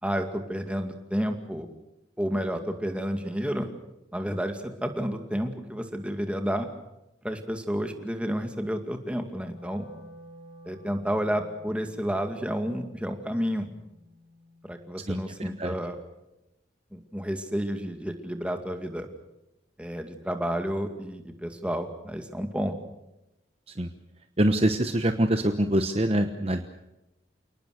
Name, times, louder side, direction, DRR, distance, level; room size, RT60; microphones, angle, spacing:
voice 1, 0.0-1.7 2.2-3.7 4.1-6.7 7.2-9.9 10.7-13.7 14.6-16.0 16.9-19.1 19.8-22.7, equal, 5° right, 5 dB, 2.2 m, -30 dB
Wind instrument woodwind instrument, 9.3-15.5, equal, 70° left, 4.6 m, -52 dB
voice 2, 15.1-15.7 23.7-23.9 24.4-26.6, right 1 dB, 30° right, 7 dB, 1.1 m, -25 dB
28.5 x 19.0 x 6.6 m, 0.93 s
head